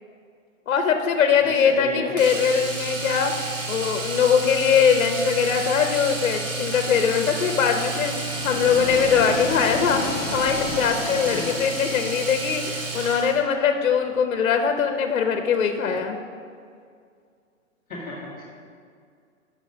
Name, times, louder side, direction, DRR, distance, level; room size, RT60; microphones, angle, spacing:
voice 1, 0.7-16.2, left 6 dB, 65° left, 5 dB, 0.8 m, -22 dB
voice 2, 1.4-2.1 11.3-11.5 17.9-18.4, left 2 dB, ahead, -20 dB, 0.3 m, -34 dB
Domestic sounds home sounds, 2.2-13.4 15.5-15.7 16.0-16.1, right 2 dB, 65° right, 1.8 m, -31 dB
sound 1, 7.4-13.3, left 4 dB, 30° left, 0.9 m, -33 dB
8.4 x 6.2 x 5.0 m, 2.2 s
hypercardioid pair, 145°, 41 cm